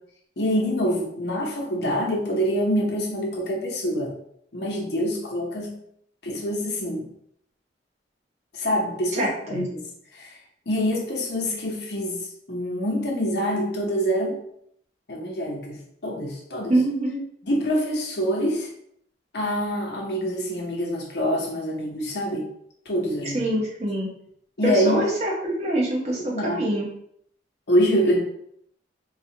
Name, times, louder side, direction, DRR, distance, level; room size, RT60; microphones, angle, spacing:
voice 1, 0.4-4.1 4.5-5.8 6.2-7.1 8.5-9.8 10.1-10.4 10.7-14.4 15.1-16.7 17.4-18.7 19.3-22.5 22.9-23.5 24.6-25.0 26.3-26.6 27.7-28.2, equal, 65° left, -1 dB, 0.8 m, -25 dB
voice 2, 9.2-9.7 16.7-17.2 23.3-24.1 24.6-26.9, right 1 dB, 40° right, -3 dB, 0.9 m, -25 dB
4.0 x 2.4 x 2.8 m, 0.70 s
head